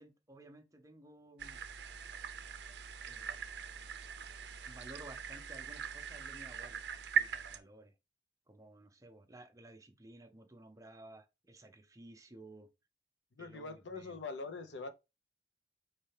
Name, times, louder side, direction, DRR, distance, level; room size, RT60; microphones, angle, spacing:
voice 1, 0.0-1.6 3.1-3.4 4.7-7.9 8.5-12.7 13.4-14.1, right 1 dB, 20° right, 0.5 m, -55 dB
sound 1, 1.4-7.6, right 7 dB, 70° right, 0.5 m, -40 dB
voice 2, 13.3-14.9, left 4 dB, 80° left, 0.7 m, -43 dB
4.3 x 3.2 x 3.3 m
head